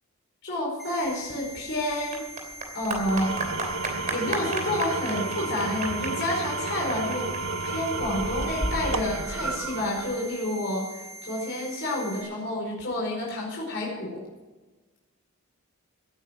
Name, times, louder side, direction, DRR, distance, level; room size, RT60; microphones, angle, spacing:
voice 1, 0.4-2.2 2.7-3.3 4.1-7.3 7.6-14.2, left 1 dB, 55° left, -3 dB, 5.0 m, -29 dB
sound 1, 0.8-12.2, right 1 dB, ahead, 3.4 m, -43 dB
Clapping / Applause, 1.0-10.0, right 2 dB, 35° right, 3.0 m, -35 dB
Engine / Tools, 2.9-10.4, right 3 dB, 70° right, 1.0 m, -32 dB
17.5 x 9.2 x 6.1 m, 1.2 s
head